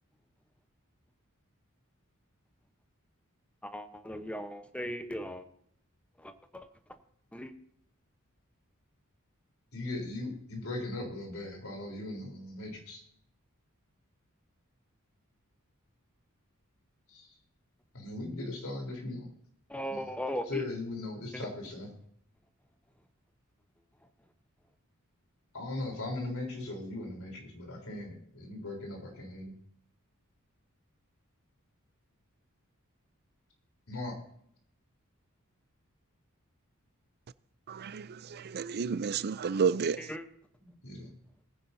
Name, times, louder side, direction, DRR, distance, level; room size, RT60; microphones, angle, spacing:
voice 1, 3.6-5.5 6.2-6.7 7.3-7.5 19.7-20.7 21.3-21.5 40.0-40.2, equal, 5° left, 0.9 m, -38 dB
voice 2, 9.7-13.0 17.1-17.3 17.9-19.3 19.9-20.1 20.5-21.9 25.5-29.5 33.9-34.2 40.8-41.1, left 2 dB, 75° left, 3.8 m, -38 dB
voice 3, 37.7-40.0, right 6 dB, 50° right, 0.5 m, -31 dB
20.0 x 10.0 x 2.7 m
head